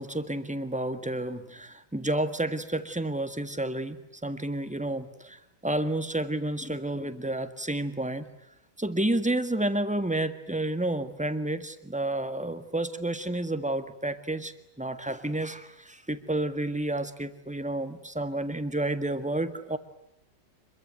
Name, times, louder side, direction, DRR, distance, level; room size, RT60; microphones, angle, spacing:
voice 1, 0.0-4.0 4.2-8.3 8.8-14.5 14.8-19.8, right 1 dB, 5° right, 10 dB, 1.6 m, -30 dB
26.5 x 23.0 x 9.4 m, 0.78 s
omnidirectional pair, 1.9 m